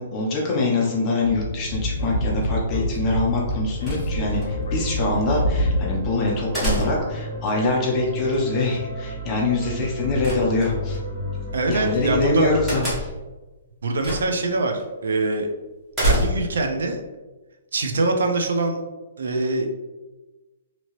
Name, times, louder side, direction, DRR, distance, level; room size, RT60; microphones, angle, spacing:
voice 1, 0.0-11.0 11.7-13.1, left 2 dB, 15° left, -3 dB, 0.6 m, -24 dB
Speech / Wind, 1.2-6.1, equal, 65° left, 0.5 m, -26 dB
sound 1, 3.8-4.5 6.5-7.2 10.2-11.0 12.7-13.3 14.0-14.4 14.8-14.9 15.9-16.6, equal, 10° right, 0.8 m, -25 dB
sound 2, 3.8-12.7, left 2 dB, 40° right, 1.2 m, -33 dB
voice 2, 11.5-12.5 13.8-15.5 16.0-17.0 17.7-18.8 19.2-19.7, right 2 dB, 80° right, 4 dB, 0.5 m, -23 dB
2.9 x 2.7 x 2.8 m, 1.2 s
hypercardioid pair, 175°, 0 cm